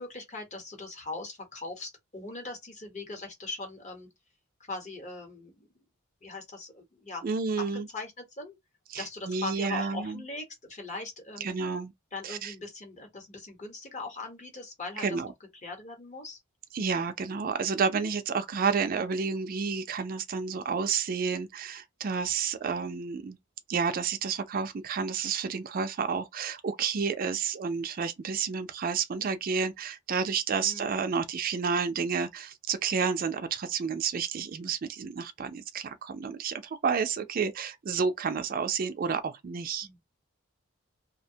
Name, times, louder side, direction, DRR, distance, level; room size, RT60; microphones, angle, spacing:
voice 1, 0.0-4.1 4.7-5.7 6.2-7.2 7.6-8.6 9.0-11.7 12.1-15.2 15.6-16.4 30.6-31.0 39.8-40.0, left 3 dB, 35° left, 0.9 m, -40 dB
voice 2, 7.2-7.9 8.9-10.2 11.4-11.9 12.2-12.5 15.0-15.3 16.7-23.4 23.7-39.9, right 5 dB, 45° right, 0.4 m, -30 dB
2.7 x 2.1 x 2.6 m
head